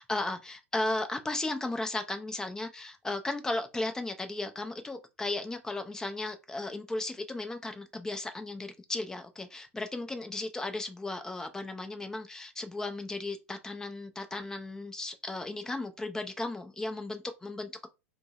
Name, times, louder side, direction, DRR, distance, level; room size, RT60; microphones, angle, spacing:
voice 1, 0.0-17.9, left 2 dB, 10° left, 0.4 m, -35 dB
2.6 x 2.0 x 3.9 m
figure-of-eight pair, 90°, 7 cm